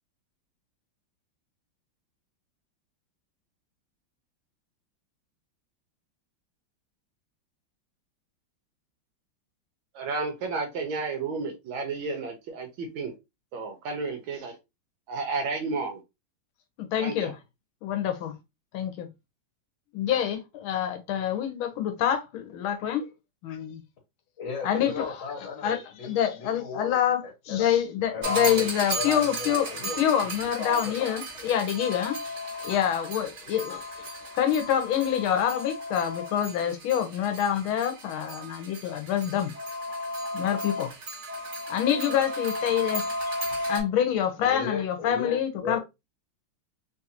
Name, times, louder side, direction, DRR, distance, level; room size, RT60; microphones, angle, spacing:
voice 1, 9.9-13.1 13.5-14.6 15.1-16.0 17.0-17.3, right 4 dB, 80° right, 1.5 m, -32 dB
voice 2, 16.8-17.4 17.8-18.3 18.7-19.1 19.9-23.1 23.4-23.8 24.6-25.1 25.6-25.8 26.0-27.2 27.5-32.2 32.6-33.8 34.4-39.5 40.3-40.9 41.7-43.1 43.7-45.8, left 9 dB, 90° left, 1.6 m, -26 dB
voice 3, 24.4-27.7 28.1-30.0 30.4-31.0 44.4-45.8, left 5 dB, 70° left, 1.7 m, -36 dB
sound 1, 28.2-43.8, equal, 40° right, 1.4 m, -34 dB
3.7 x 2.5 x 2.7 m
omnidirectional pair, 2.2 m